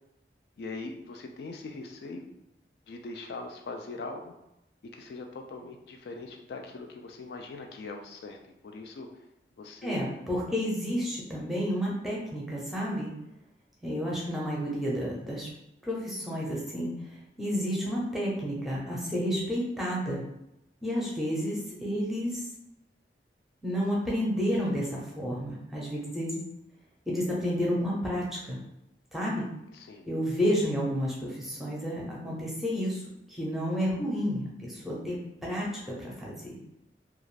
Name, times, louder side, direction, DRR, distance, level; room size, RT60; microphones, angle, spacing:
voice 1, 0.6-2.2 2.9-4.3 4.9-8.4 8.6-9.2 9.6-10.0 29.7-30.1, left 3 dB, 65° left, 3 dB, 0.3 m, -41 dB
voice 2, 9.8-13.1 13.8-15.5 15.8-16.9 17.4-20.2 20.8-22.4 23.6-26.4 27.1-28.6 29.1-29.5 30.1-33.0 33.3-35.2 35.4-36.6, equal, ahead, -5 dB, 0.6 m, -30 dB
2.4 x 2.3 x 3.2 m, 0.85 s
head